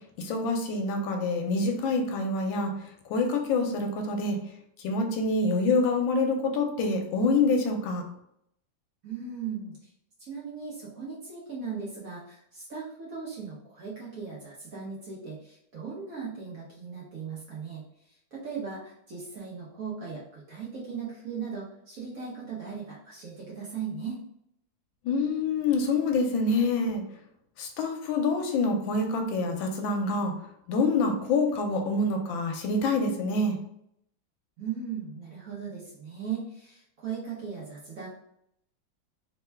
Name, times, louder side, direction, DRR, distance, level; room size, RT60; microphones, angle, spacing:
voice 1, 0.2-4.4 4.8-8.0 25.0-27.0 27.6-30.3 30.7-33.6, left 3 dB, 80° left, 3 dB, 1.3 m, -26 dB
voice 2, 9.0-9.9 10.2-24.2 34.6-38.1, right 6 dB, 60° right, -5 dB, 1.0 m, -38 dB
3.4 x 2.2 x 3.3 m, 0.75 s
omnidirectional pair, 2.1 m